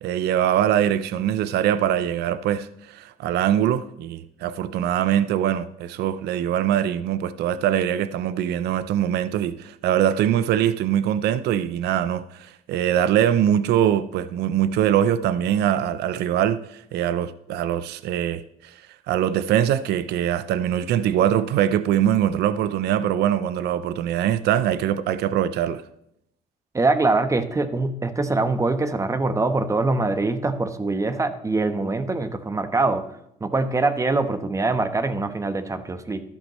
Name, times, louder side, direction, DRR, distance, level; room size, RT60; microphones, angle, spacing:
voice 1, 0.0-25.8, right 10 dB, 75° right, 0.7 m, -23 dB
voice 2, 26.7-33.0 33.4-36.2, right 3 dB, 20° right, 1.1 m, -23 dB
13.5 x 12.0 x 3.1 m
cardioid pair, 110°, 17 cm